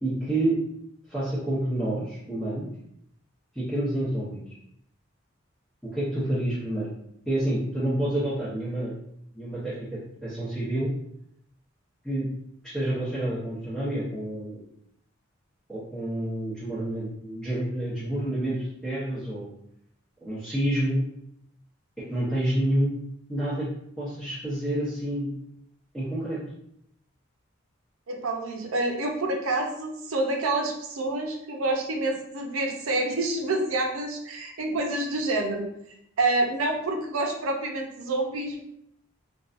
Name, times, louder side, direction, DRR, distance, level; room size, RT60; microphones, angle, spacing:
voice 1, 0.0-0.5 1.1-2.7 3.5-4.5 5.8-6.9 7.3-8.9 9.3-10.9 12.0-12.3 12.6-14.6 15.7-19.5 20.2-21.0 22.1-22.9 23.3-23.7 24.0-25.4 25.9-26.4, right 1 dB, ahead, -12 dB, 0.8 m, -28 dB
voice 2, 28.1-35.7 36.2-38.6, right 2 dB, 90° right, 2 dB, 0.5 m, -27 dB
2.6 x 2.2 x 2.4 m, 0.73 s
head